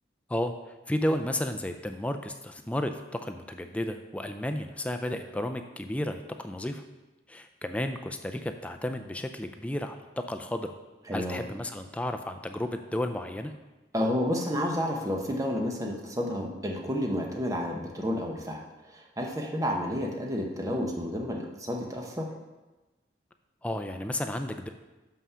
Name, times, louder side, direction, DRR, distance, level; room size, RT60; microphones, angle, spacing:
voice 1, 0.9-6.8 7.3-10.7 11.1-13.5 23.6-24.7, left 1 dB, 5° left, 6 dB, 0.3 m, -32 dB
voice 2, 11.1-11.4 13.9-18.6 18.9-22.3, equal, 20° right, 0 dB, 0.9 m, -30 dB
6.2 x 5.7 x 5.6 m, 1.1 s
head